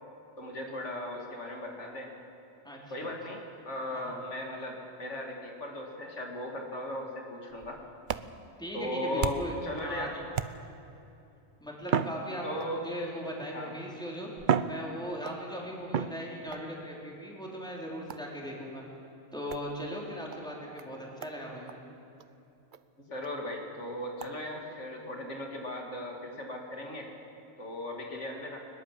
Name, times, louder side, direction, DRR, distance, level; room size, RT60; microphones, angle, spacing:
voice 1, 0.4-2.1 2.9-7.8 8.7-9.4 9.6-10.2 12.4-12.8 13.5-13.7 23.0-27.1 27.6-28.7, left 1 dB, 85° left, 1 dB, 2.7 m, -37 dB
voice 2, 2.6-3.1 3.9-4.2 8.6-10.1 11.6-14.3 14.7-18.8 19.3-21.7, equal, 5° left, -3 dB, 4.1 m, -39 dB
sound 1, 7.5-9.7 10.3-10.9 11.8-12.9 13.8-13.9 14.4-15.4 15.9-16.7 18.1-18.4 19.5-19.7 20.3-20.4 20.8-20.9 21.2-21.4 21.7-21.8 22.2-22.3 22.7-22.8 23.2-23.3 24.2-24.3, right 7 dB, 50° right, 0.7 m, -33 dB
21.5 x 21.0 x 7.6 m, 2.7 s
omnidirectional pair, 1.2 m